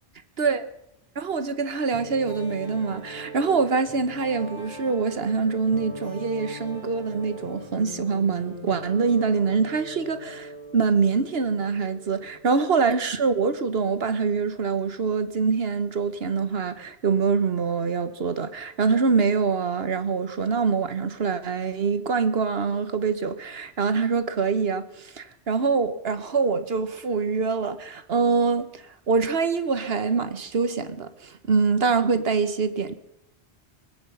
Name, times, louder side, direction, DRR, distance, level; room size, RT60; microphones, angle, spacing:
voice 1, 1.1-32.9, right 5 dB, 70° right, 10 dB, 1.4 m, -24 dB
sound 1, 1.9-12.5, right 1 dB, 20° left, 7.0 m, -41 dB
24.5 x 8.7 x 5.6 m, 0.81 s
omnidirectional pair, 1.1 m